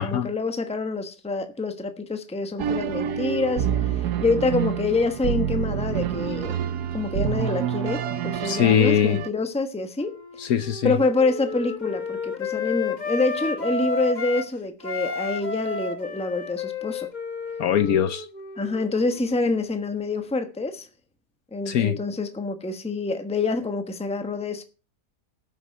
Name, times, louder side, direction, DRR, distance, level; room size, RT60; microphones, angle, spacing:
voice 1, 0.0-6.6 6.9-10.2 10.8-17.1 18.6-20.9 21.5-24.6, left 3 dB, 5° left, 0.9 m, -26 dB
sound 1, 2.6-9.3, right 9 dB, 70° right, 1.3 m, -27 dB
voice 2, 8.4-9.2 10.4-11.0 17.6-18.3 21.7-22.0, left 9 dB, 65° left, 1.1 m, -21 dB
Wind instrument woodwind instrument, 10.0-14.5 14.8-19.3, left 4 dB, 30° left, 1.1 m, -32 dB
13.0 x 6.5 x 6.6 m
omnidirectional pair, 1.8 m